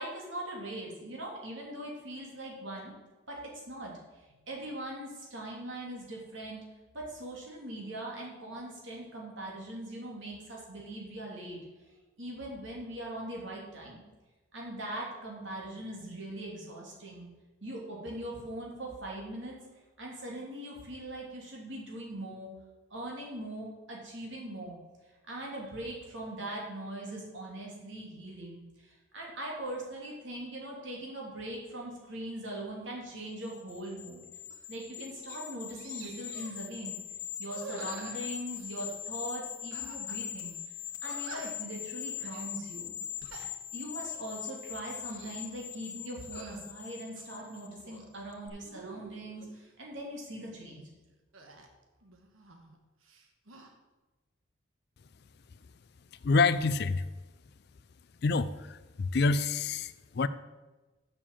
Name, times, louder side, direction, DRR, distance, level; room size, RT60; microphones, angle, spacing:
voice 1, 0.0-2.9 3.3-6.6 6.9-11.6 12.2-14.0 14.5-17.3 17.6-19.6 20.0-22.5 22.9-24.8 25.3-34.2 34.7-37.0 37.4-40.5 41.0-42.9 43.7-50.9, right 1 dB, 65° right, -2 dB, 2.8 m, -41 dB
sound 1, 33.4-48.0 48.3-48.5, left 9 dB, 90° left, 1.2 m, -41 dB
sound 2, 34.5-34.7 35.0-35.4 35.7-36.6 37.4-38.9 39.7-40.2 40.5-40.6 41.0-41.7 42.2-42.5 43.0-43.5 44.0-44.2 44.9-45.5 46.2-46.6 47.1-48.1 48.6-49.5 51.3-52.8 53.0-53.7, right 3 dB, 80° right, 1.3 m, -48 dB
voice 2, 56.2-57.0 58.2-60.3, left 4 dB, 50° left, 14 dB, 0.4 m, -27 dB
7.4 x 6.5 x 7.3 m, 1.2 s
head